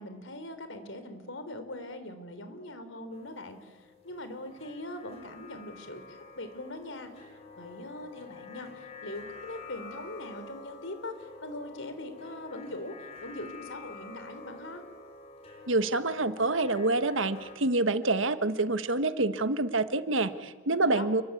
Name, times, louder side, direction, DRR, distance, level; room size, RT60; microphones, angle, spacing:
voice 1, 0.0-14.8 20.7-21.1, left 1 dB, 75° left, 9 dB, 3.8 m, -41 dB
sound 1, 3.1-17.6, left 4 dB, 30° left, 5.0 m, -48 dB
voice 2, 15.7-21.2, right 2 dB, 80° right, 11 dB, 1.4 m, -27 dB
29.0 x 23.0 x 8.6 m, 1.4 s
head